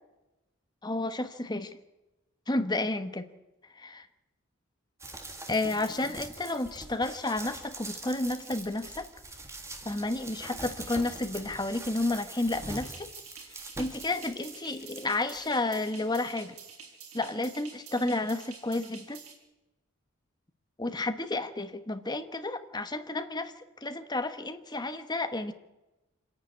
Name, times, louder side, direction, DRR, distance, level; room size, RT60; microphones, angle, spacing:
voice 1, 0.8-1.8 2.5-3.3 3.8-4.1 5.5-9.1 9.8-13.1 13.8-16.5 17.1-19.2 20.8-23.5 23.8-25.5, left 2 dB, 20° left, 9 dB, 1.2 m, -31 dB
sound 1, 5.0-15.6 16.0-16.1, right 2 dB, 15° right, 1.9 m, -43 dB
sound 2, 12.5-19.4, right 6 dB, 85° right, 5.5 m, -49 dB
26.0 x 10.5 x 9.7 m, 1.0 s
head